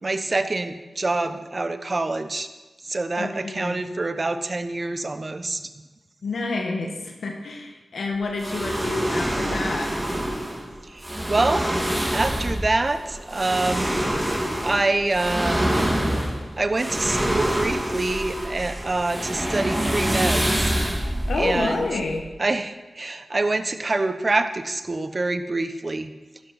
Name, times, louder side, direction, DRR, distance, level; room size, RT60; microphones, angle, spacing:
voice 1, 0.0-2.5 2.8-5.7 10.8-11.7 12.1-13.9 14.6-15.7 16.6-21.1 21.3-21.9 22.4-26.1, right 2 dB, 40° right, 10 dB, 0.9 m, -26 dB
voice 2, 3.2-3.8 6.2-9.9 21.3-22.2, left 3 dB, 80° left, 1 dB, 1.4 m, -28 dB
sound 1, 8.4-22.3, right 1 dB, 15° right, 2.1 m, -26 dB
12.0 x 11.5 x 4.2 m, 1.2 s
cardioid pair, 45°, 0 cm